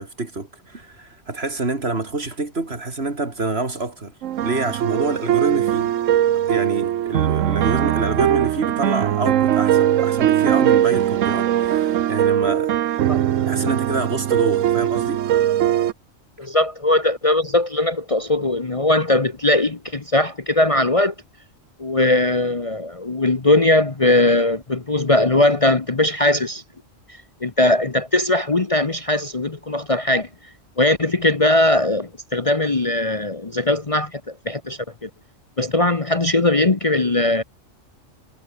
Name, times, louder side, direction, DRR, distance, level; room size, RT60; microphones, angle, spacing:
voice 1, 0.0-4.1 4.4-5.9 6.5-12.7 13.4-15.2, right 3 dB, 50° right, 3.3 m, -27 dB
sound 1, 4.2-15.9, right 11 dB, 75° right, 1.1 m, -20 dB
voice 2, 16.4-21.1 21.8-26.6 27.4-30.3 30.8-35.1 35.6-37.4, left 2 dB, 25° left, 1.2 m, -19 dB
omnidirectional pair, 1.3 m